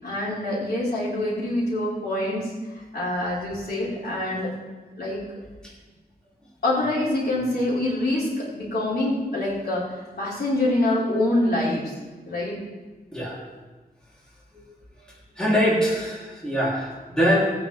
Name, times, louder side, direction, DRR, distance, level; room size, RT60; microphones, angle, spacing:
voice 1, 0.0-2.5 2.9-4.5 5.0-5.2 6.6-12.0 12.3-12.6, left 1 dB, 70° left, -7 dB, 4.8 m, -25 dB
voice 2, 15.4-17.5, equal, 5° left, -6 dB, 3.6 m, -23 dB
20.0 x 9.4 x 3.6 m, 1.3 s
wide cardioid pair, 125°, 17 cm